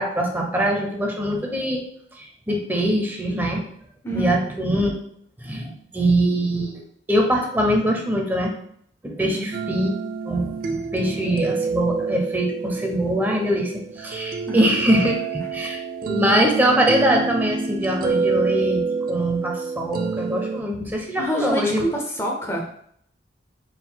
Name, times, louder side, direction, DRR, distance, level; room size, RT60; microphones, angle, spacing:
voice 1, 0.0-1.8 2.2-3.6 4.1-4.9 5.4-6.8 7.1-8.5 9.0-9.9 10.3-21.8, right 1 dB, 10° right, 0 dB, 0.7 m, -23 dB
sound 1, 9.5-20.6, right 4 dB, 50° right, 0.3 m, -27 dB
voice 2, 21.2-22.7, equal, 15° left, 0 dB, 0.8 m, -26 dB
4.4 x 3.7 x 2.2 m, 0.65 s
head